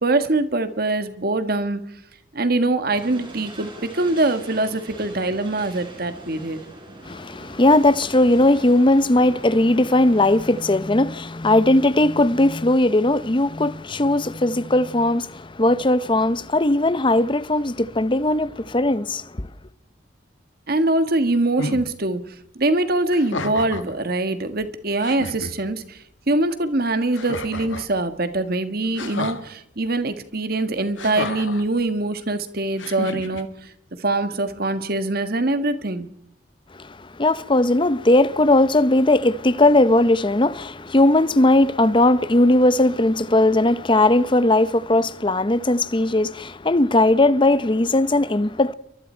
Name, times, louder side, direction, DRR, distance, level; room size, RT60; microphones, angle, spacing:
voice 1, 0.0-1.8 2.3-6.6 20.7-33.7 34.0-36.1, right 2 dB, 55° right, 1.6 m, -23 dB
sound 1, 2.9-10.8, right 1 dB, 25° right, 5.6 m, -42 dB
voice 2, 7.1-19.5 37.2-48.7, left 2 dB, 25° left, 0.8 m, -18 dB
sound 2, 21.6-21.9 23.1-23.9 24.6-24.7 25.0-25.5 27.1-27.9 29.0-29.4 31.0-31.6 32.8-33.4, left 3 dB, 90° left, 2.1 m, -31 dB
28.5 x 24.0 x 4.5 m
head